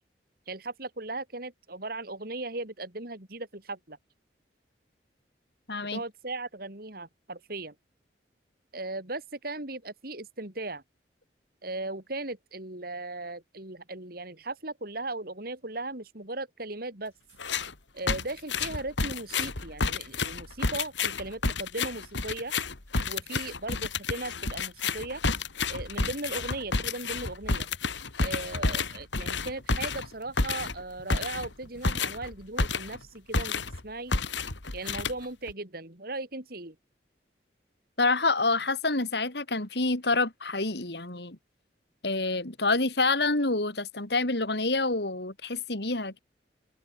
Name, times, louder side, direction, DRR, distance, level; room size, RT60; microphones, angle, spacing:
voice 1, 0.5-4.0 5.9-7.7 8.7-10.8 11.6-17.1 17.9-22.5 23.1-25.2 25.7-27.7 28.2-34.1 34.7-36.8, right 2 dB, 55° right, 3.6 m, -37 dB
voice 2, 5.7-6.0 38.0-41.4 42.0-46.2, left 3 dB, 65° left, 3.0 m, -27 dB
Slamming noise, 17.4-17.7 18.1-33.0 33.3-33.8 34.1-35.5, left 4 dB, 90° left, 2.5 m, -30 dB
head